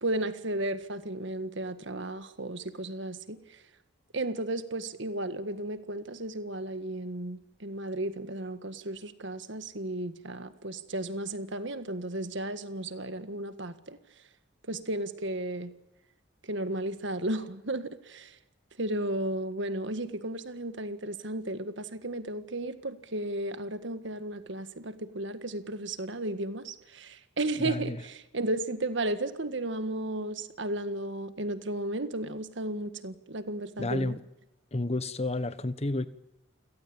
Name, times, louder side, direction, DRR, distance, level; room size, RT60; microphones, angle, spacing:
voice 1, 0.0-3.4 4.1-14.0 14.7-15.7 16.4-18.4 18.8-34.1, right 1 dB, 65° right, 11 dB, 1.7 m, -34 dB
voice 2, 27.6-28.0 33.8-34.2 34.7-36.1, left 2 dB, 30° left, 14 dB, 1.1 m, -30 dB
29.0 x 17.5 x 8.8 m, 0.97 s
head